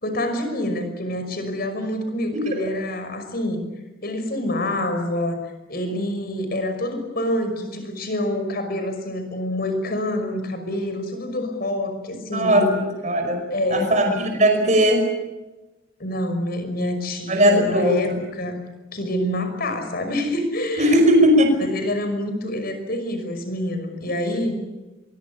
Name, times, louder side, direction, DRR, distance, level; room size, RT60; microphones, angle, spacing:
voice 1, 0.0-3.6 4.0-5.4 5.7-12.7 13.5-13.9 16.0-18.6 18.9-21.0 21.7-24.6, left 1 dB, 45° left, 7 dB, 5.7 m, -26 dB
voice 2, 12.3-12.7 13.0-13.4 13.7-15.1 17.3-18.2 20.8-21.5, equal, 35° right, 3 dB, 5.4 m, -18 dB
24.0 x 22.0 x 8.6 m, 1.1 s
head